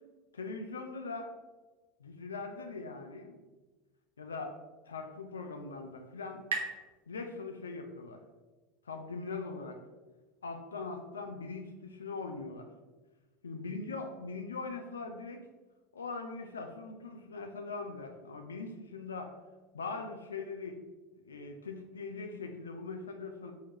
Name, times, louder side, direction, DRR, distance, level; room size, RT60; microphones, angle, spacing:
voice 1, 0.3-1.3 2.0-3.4 4.2-4.6 4.9-6.4 7.1-8.2 8.9-9.8 10.4-12.7 13.4-15.4 15.9-19.3 19.7-20.8 21.3-23.5, left 4 dB, 80° left, 5 dB, 0.4 m, -41 dB
sound 1, 5.1-8.4, right 4 dB, 70° right, 0.6 m, -43 dB
4.5 x 3.5 x 2.9 m, 1.2 s
figure-of-eight pair, 75°, 0 cm